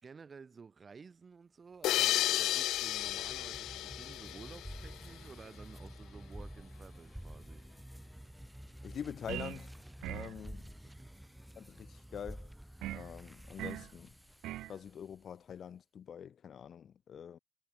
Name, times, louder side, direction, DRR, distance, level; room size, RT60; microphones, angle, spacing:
voice 1, 0.0-7.6 10.3-10.6 10.8-11.1, right 5 dB, 40° right, 4.1 m, -53 dB
sound 1, 1.8-5.2, left 14 dB, 90° left, 0.4 m, -33 dB
sound 2, 2.1-15.3, equal, 5° right, 1.0 m, -50 dB
voice 2, 8.8-9.7 10.1-10.7 11.6-12.5 12.9-14.1 14.7-17.4, left 8 dB, 55° left, 2.1 m, -45 dB
sound 3, 9.3-9.7 10.0-10.4 12.8-13.1 13.6-13.9 14.4-14.8, right 15 dB, 90° right, 0.3 m, -40 dB
cardioid pair, 90°, 0 cm